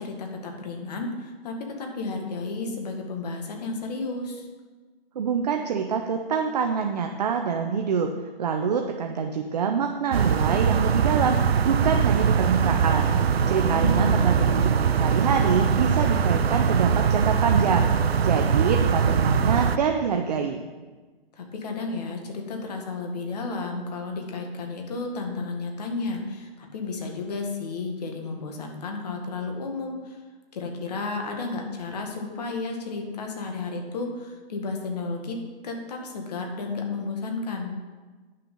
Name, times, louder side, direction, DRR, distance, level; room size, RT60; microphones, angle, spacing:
voice 1, 0.0-4.5 13.6-14.8 21.4-30.2 30.5-35.4 35.6-37.7, left 3 dB, 45° left, 2 dB, 1.8 m, -32 dB
voice 2, 5.2-8.1 8.4-11.4 11.6-13.1 13.5-14.5 15.0-17.9 18.2-20.6, right 6 dB, 45° right, 3 dB, 0.7 m, -25 dB
sound 1, 10.1-19.8, right 6 dB, 85° right, 0.7 m, -22 dB
10.0 x 6.6 x 5.4 m, 1.3 s
hypercardioid pair, 160°, 30 cm